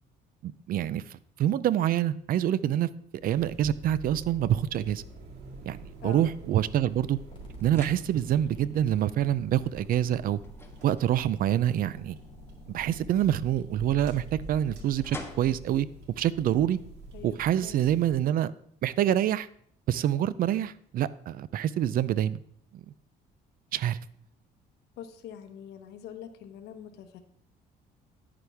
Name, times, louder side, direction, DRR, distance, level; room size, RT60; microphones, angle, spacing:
voice 1, 0.4-1.0 1.4-2.9 3.2-5.0 5.7-7.2 7.6-10.4 10.8-12.2 12.7-15.9 16.2-16.8 17.2-18.5 18.8-19.5 19.9-22.4 22.7-22.8 23.7-24.0, right 11 dB, 60° right, 18 dB, 0.5 m, -26 dB
sound 1, 3.2-18.2, right 2 dB, 80° right, 2.2 m, -47 dB
voice 2, 6.0-6.3 17.1-17.8 25.0-27.2, left 9 dB, 75° left, 6 dB, 1.0 m, -44 dB
sound 2, 7.0-17.8, left 2 dB, 15° left, 1.4 m, -52 dB
sound 3, 7.3-15.3, left 2 dB, 30° left, 3.0 m, -50 dB
9.8 x 9.6 x 3.5 m, 0.64 s
cardioid pair, 110°, 17 cm